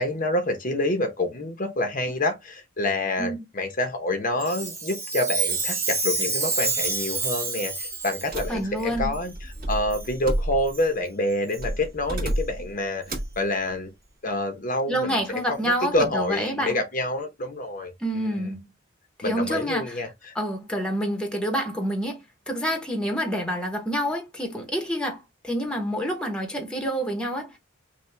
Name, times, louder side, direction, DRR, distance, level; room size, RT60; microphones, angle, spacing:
voice 1, 0.0-9.3 9.7-13.9 14.2-18.5 19.2-20.3, left 1 dB, 40° left, 0.9 m, -27 dB
Chime, 4.4-8.5 9.1-9.2 9.9-10.1 10.7-10.8 11.5-11.6 12.3-12.4 13.1-13.2, right 3 dB, 15° right, 1.2 m, -28 dB
sound 1, 8.3-10.9 11.6-12.7 13.1-13.4, right 1 dB, 45° right, 1.9 m, -30 dB
voice 2, 8.5-9.1 14.9-16.8 18.0-18.7 19.2-20.1 20.3-27.6, equal, 5° left, 1.0 m, -28 dB
5.6 x 2.4 x 3.4 m
head